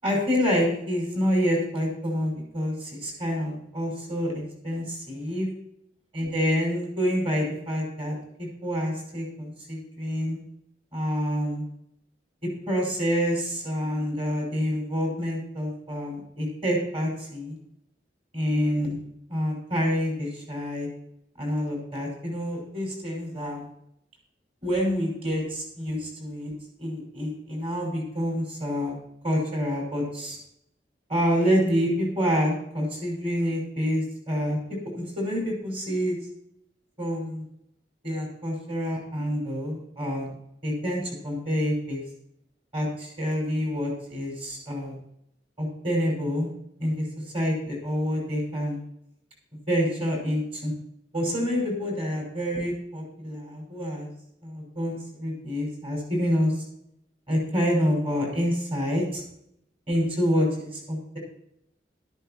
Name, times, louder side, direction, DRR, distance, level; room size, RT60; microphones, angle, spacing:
voice 1, 0.0-5.5 6.1-10.4 10.9-11.7 12.4-17.6 18.3-19.0 19.3-20.9 21.4-23.7 24.6-26.5 26.8-28.9 29.2-30.4 31.1-34.6 34.9-36.2 37.0-37.4 38.0-40.4 40.6-42.0 42.7-45.0 45.6-46.5 46.8-47.0 47.3-48.8 49.7-50.7 51.1-54.1 54.4-56.6 57.3-59.2 59.9-61.2, equal, 35° right, -2 dB, 5.8 m, -27 dB
13.5 x 13.0 x 3.1 m, 0.76 s
head